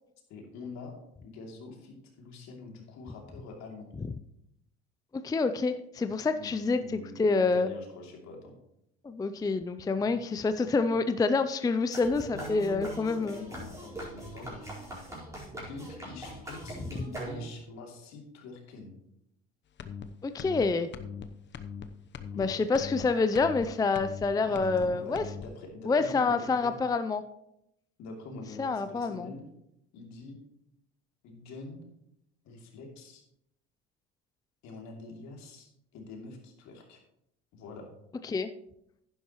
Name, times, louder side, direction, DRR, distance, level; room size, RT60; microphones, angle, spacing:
voice 1, 0.3-1.0 1.2-3.9 6.4-6.5 6.8-8.5 9.9-10.1 10.7-10.9 12.3-14.8 15.5-19.0 22.3-22.6 24.4-26.8 28.0-29.5 29.9-30.4 31.2-31.9 32.4-33.2 34.6-37.0 37.5-37.9, left 3 dB, 65° left, 1 dB, 2.9 m, -45 dB
voice 2, 5.2-7.7 9.0-13.5 20.2-20.9 22.4-25.2 25.9-27.2 28.6-29.3 38.2-38.5, left 4 dB, 15° left, 10 dB, 0.5 m, -27 dB
sound 1, 11.9-17.7, right 1 dB, 10° right, 4.4 m, -41 dB
sound 2, 19.8-20.0 20.4-20.6 20.9-21.2 21.5-21.8 22.1-22.5 22.7-23.0 23.3-23.6 23.9-24.3 24.5-24.9 25.1-25.5, left 7 dB, 40° left, 0.9 m, -40 dB
11.0 x 10.0 x 3.1 m, 0.79 s
supercardioid pair, 95°, 30 cm